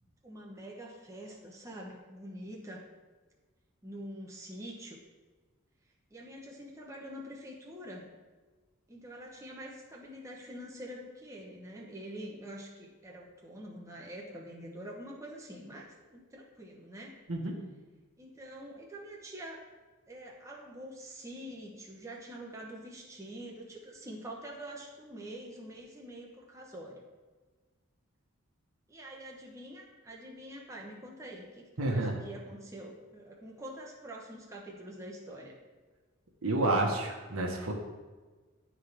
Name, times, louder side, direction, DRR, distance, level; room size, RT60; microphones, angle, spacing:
voice 1, 0.2-2.8 3.8-5.0 6.1-8.1 8.9-17.2 18.2-19.6 20.1-27.0 28.9-35.5, right 1 dB, 15° right, -2 dB, 0.8 m, -45 dB
voice 2, 31.8-32.2 36.4-37.7, right 2 dB, 80° right, 0 dB, 1.1 m, -29 dB
11.0 x 3.8 x 3.3 m, 1.3 s
head